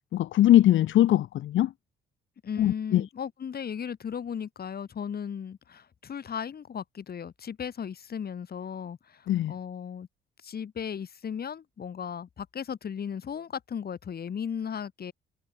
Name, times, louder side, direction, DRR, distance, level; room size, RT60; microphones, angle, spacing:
voice 1, 0.1-1.7 2.6-3.0 9.3-9.5, left 13 dB, 80° left, 2.1 m, -21 dB
voice 2, 2.4-10.1 10.4-15.1, left 7 dB, 50° left, 5.4 m, -36 dB
cardioid pair, 90°, 20 cm